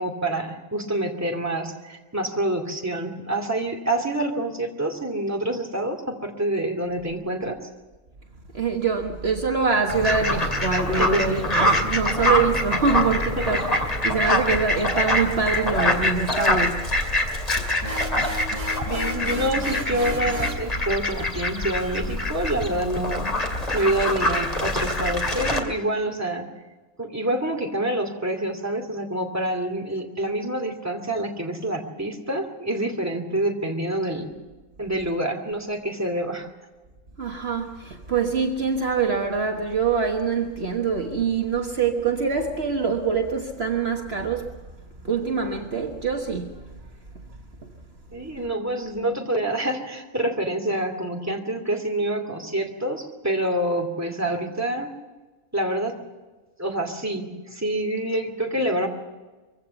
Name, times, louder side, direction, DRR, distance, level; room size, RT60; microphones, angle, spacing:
voice 1, 0.0-7.6 11.0-11.4 13.4-13.6 18.9-23.3 23.7-26.5 27.0-34.3 34.8-36.5 48.1-54.9 55.5-56.0 56.6-58.9, right 1 dB, 10° right, 2.6 m, -27 dB
voice 2, 8.5-13.7 14.0-16.9 17.6-17.7 37.2-44.5 45.0-46.7, right 5 dB, 55° right, 1.6 m, -24 dB
Fowl, 9.9-25.6, left 1 dB, 30° left, 2.6 m, -25 dB
sound 1, 17.8-20.7, equal, 70° right, 2.7 m, -33 dB
23.5 x 16.5 x 7.0 m
omnidirectional pair, 1.3 m